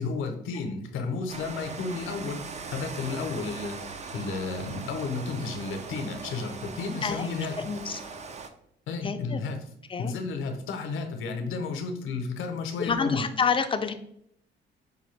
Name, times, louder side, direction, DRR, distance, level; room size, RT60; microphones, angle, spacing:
voice 1, 0.0-2.4 2.7-7.6 8.9-9.6 10.0-13.3, left 4 dB, 80° left, 5 dB, 0.7 m, -32 dB
Rain, 1.3-8.5, right 4 dB, 35° right, 0.4 m, -40 dB
voice 2, 7.6-8.0 9.0-9.4 9.9-10.1 12.8-13.9, left 5 dB, 25° left, 8 dB, 0.4 m, -28 dB
5.1 x 2.3 x 3.2 m, 0.70 s
cardioid pair, 90°, 20 cm